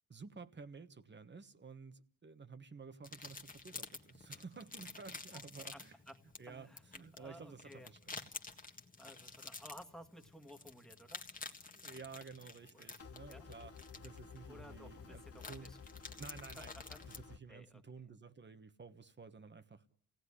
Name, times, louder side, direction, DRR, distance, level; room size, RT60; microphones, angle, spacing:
voice 1, 0.1-6.0 6.4-8.3 11.7-15.7 16.2-16.7 17.1-19.8, right 4 dB, 25° right, 1.3 m, -53 dB
sound 1, 3.0-17.2, left 3 dB, 20° left, 1.6 m, -51 dB
voice 2, 5.7-6.2 6.5-7.9 9.0-11.2 12.7-12.9 13.3-13.5 14.5-15.8 16.6-17.0 17.5-17.8, equal, ahead, 1.8 m, -56 dB
sound 2, 13.0-17.4, left 6 dB, 35° left, 1.1 m, -53 dB
28.5 x 17.5 x 9.9 m
cardioid pair, 135°, 40 cm